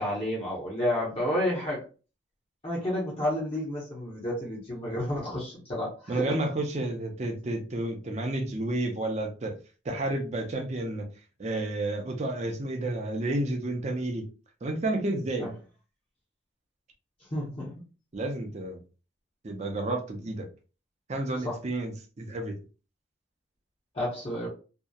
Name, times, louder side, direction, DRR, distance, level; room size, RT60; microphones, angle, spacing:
voice 1, 0.0-1.8 2.6-6.3 15.4-15.5 17.3-17.7 21.4-21.6 23.9-24.5, left 1 dB, 30° left, 0.7 m, -30 dB
voice 2, 6.1-9.5 9.8-11.1 11.4-14.3 14.6-15.5 18.1-18.8 19.4-20.5 21.1-22.6, right 2 dB, 35° right, 0.5 m, -31 dB
2.6 x 2.0 x 2.3 m
head